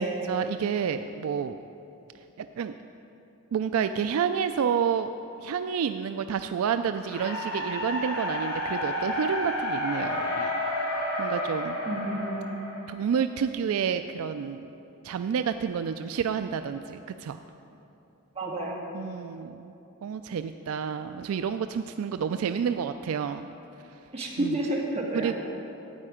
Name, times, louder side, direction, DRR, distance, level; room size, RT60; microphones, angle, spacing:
voice 1, 0.0-1.6 2.4-2.7 3.5-5.1 5.4-10.5 11.2-11.8 12.9-14.6 15.0-17.4 18.9-19.7 20.0-23.5 24.4-24.6 25.1-25.4, right 7 dB, 70° right, 9 dB, 0.3 m, -29 dB
sound 1, 7.0-13.2, left 1 dB, 75° left, 2.6 m, -31 dB
voice 2, 11.9-12.5 18.4-18.9 24.1-25.4, right 1 dB, 30° right, -4 dB, 1.9 m, -30 dB
13.0 x 9.0 x 5.0 m, 2.9 s
head